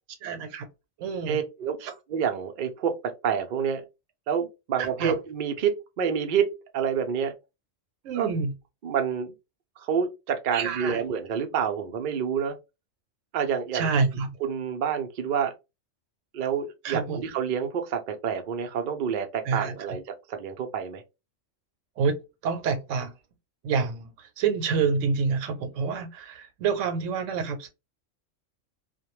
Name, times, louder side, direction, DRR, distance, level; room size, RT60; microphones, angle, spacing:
voice 1, 0.2-0.7 1.0-1.4 1.8-1.9 4.8-5.2 8.0-8.5 10.5-11.0 13.7-14.3 16.8-17.2 19.5-19.7 22.0-22.2 22.4-23.1 23.6-27.7, right 5 dB, 80° right, 0.9 m, -27 dB
voice 2, 1.3-1.8 2.1-3.8 4.3-7.3 8.2-8.3 8.8-9.3 9.8-12.6 13.3-13.9 14.4-15.5 16.3-20.0 20.3-21.0, right 7 dB, 60° right, 0.5 m, -28 dB
2.2 x 2.1 x 2.9 m
omnidirectional pair, 1.3 m